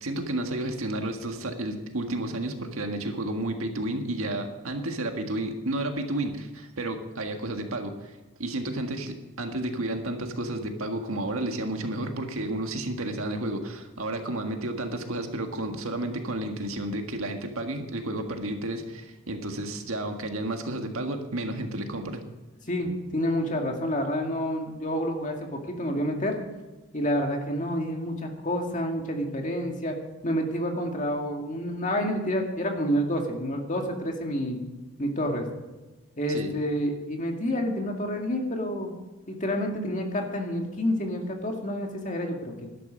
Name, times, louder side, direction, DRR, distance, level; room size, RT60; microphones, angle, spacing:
voice 1, 0.0-8.1 8.4-22.2 36.3-36.5, right 1 dB, 80° right, 5 dB, 1.7 m, -31 dB
voice 2, 22.7-26.4 26.9-30.0 30.2-34.6 35.0-35.5 36.2-38.9 39.3-42.7, equal, 35° left, 2 dB, 2.1 m, -29 dB
12.5 x 11.5 x 5.3 m, 1.1 s
head